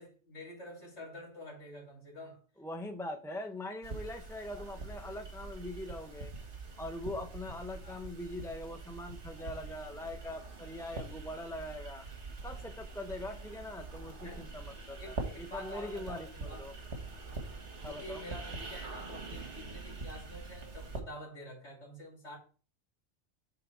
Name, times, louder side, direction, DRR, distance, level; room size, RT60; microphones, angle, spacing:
voice 1, 0.0-2.4 7.8-8.0 14.2-14.5 15.0-16.7 17.6-22.4, left 1 dB, 85° left, 2.7 m, -48 dB
voice 2, 2.6-6.3 6.8-12.1 12.4-16.7 17.8-18.2, left 1 dB, 5° left, 0.3 m, -42 dB
sound 1, 3.8-21.0, right 3 dB, 85° right, 1.7 m, -44 dB
8.0 x 3.9 x 4.5 m
omnidirectional pair, 1.1 m